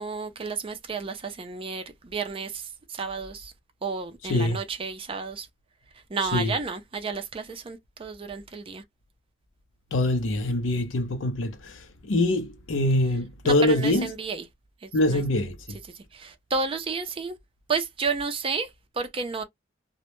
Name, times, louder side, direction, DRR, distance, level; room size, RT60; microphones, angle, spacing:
voice 1, 0.0-3.5 3.8-5.5 6.1-8.8 13.4-14.5 14.8-15.2 15.7-17.4 17.7-19.4, right 4 dB, 30° right, 0.4 m, -32 dB
voice 2, 9.9-14.1 14.9-15.8, left 1 dB, 85° left, 0.5 m, -24 dB
2.1 x 2.0 x 2.9 m
head